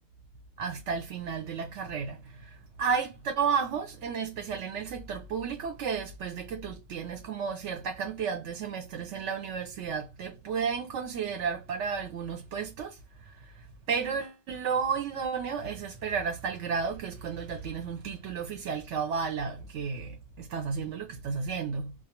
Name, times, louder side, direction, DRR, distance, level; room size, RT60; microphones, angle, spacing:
voice 1, 0.6-13.0 13.9-21.9, right 6 dB, 70° right, 0.8 m, -32 dB
2.3 x 2.2 x 2.8 m
omnidirectional pair, 1.4 m